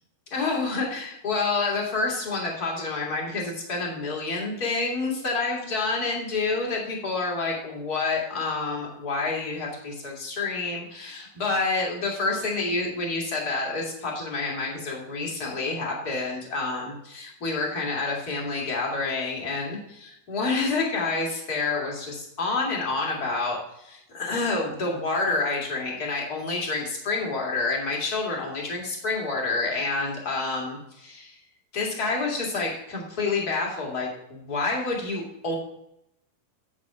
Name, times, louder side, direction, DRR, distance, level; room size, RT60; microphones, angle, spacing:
voice 1, 0.3-31.4 31.7-35.5, left 3 dB, 30° left, -2 dB, 1.9 m, -28 dB
8.7 x 5.9 x 6.0 m, 0.81 s
omnidirectional pair, 4.3 m